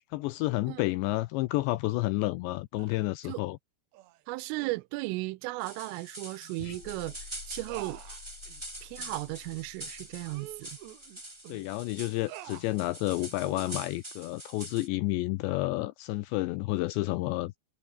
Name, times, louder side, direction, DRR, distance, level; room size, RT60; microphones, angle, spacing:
voice 1, 0.1-3.6 11.5-17.6, left 19 dB, 90° left, 2.6 m, -30 dB
sound 1, 2.8-3.1 3.9-4.2 4.6-4.8 5.9-6.0 6.4-6.5 6.9-7.0 7.7-8.6 9.0-9.2 9.6-9.7 10.2-11.7 12.3-12.8 13.4-13.8, right 16 dB, 75° right, 2.9 m, -48 dB
voice 2, 4.3-7.2 7.5-8.0 8.8-10.8, right 22 dB, 90° right, 3.2 m, -35 dB
sound 2, 5.6-14.9, right 1 dB, 5° right, 2.7 m, -45 dB
sound 3, 6.6-11.2, left 6 dB, 40° left, 4.0 m, -50 dB
omnidirectional pair, 5.8 m